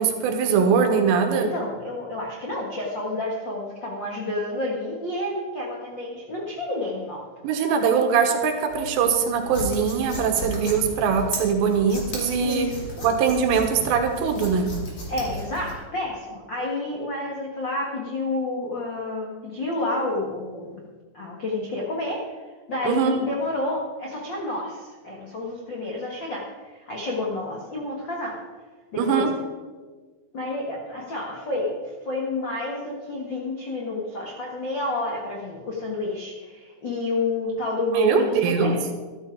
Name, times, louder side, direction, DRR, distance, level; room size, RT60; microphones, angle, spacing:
voice 1, 0.0-1.5 7.4-12.7 13.0-14.7 22.9-23.1 29.0-29.3 37.9-38.8, right 6 dB, 75° right, 5 dB, 3.4 m, -22 dB
voice 2, 1.3-7.2 12.4-13.0 15.1-20.8 21.1-22.4 22.7-28.4 28.9-29.4 30.3-38.8, left 2 dB, 60° left, -3 dB, 1.1 m, -30 dB
sound 1, 8.7-15.7, left 1 dB, 35° left, 2.8 m, -35 dB
13.5 x 13.0 x 4.6 m, 1.4 s
omnidirectional pair, 5.2 m